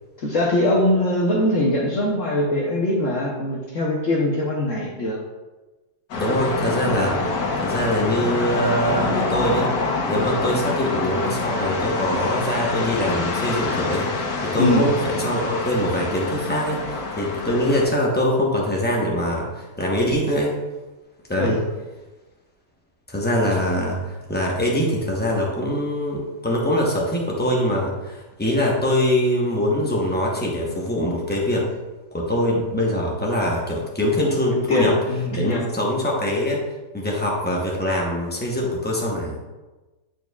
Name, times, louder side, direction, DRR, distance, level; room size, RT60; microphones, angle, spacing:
voice 1, 0.2-5.2 14.6-14.8 21.3-21.6 34.7-35.6, left 1 dB, 55° left, -4 dB, 1.0 m, -22 dB
sound 1, 6.1-17.9, left 3 dB, 75° left, 1.6 m, -26 dB
voice 2, 6.1-7.2 7.6-9.7 10.1-20.6 21.3-21.6 23.1-31.7 32.1-35.0 35.3-36.7 36.9-39.4, equal, 15° left, -3 dB, 0.3 m, -23 dB
9.4 x 4.5 x 2.3 m, 1.2 s
omnidirectional pair, 1.9 m